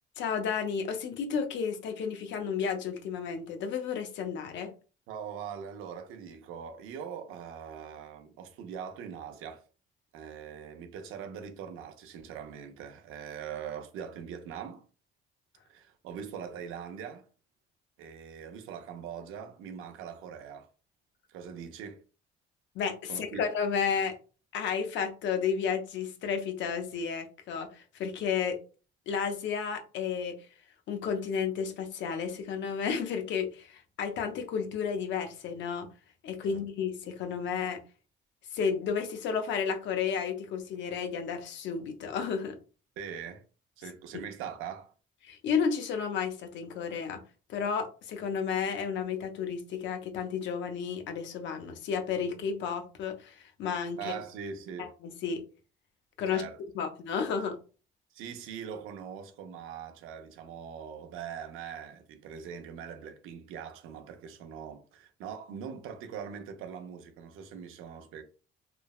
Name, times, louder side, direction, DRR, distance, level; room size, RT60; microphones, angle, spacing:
voice 1, 0.2-4.7 22.7-24.1 24.5-28.6 29.1-30.4 30.9-35.9 36.2-37.8 38.5-42.6 45.2-47.2 47.5-54.1 54.8-55.4 56.2-56.4 56.7-57.6, left 6 dB, 65° left, 0.6 m, -32 dB
voice 2, 5.1-9.6 10.1-14.8 15.7-17.3 18.0-20.7 21.3-22.0 23.1-23.4 36.5-36.6 43.0-43.4 43.8-44.9 54.0-54.9 56.3-56.6 58.1-68.2, right 7 dB, 80° right, 0.5 m, -42 dB
3.1 x 2.0 x 2.3 m
cardioid pair, 150°, 21 cm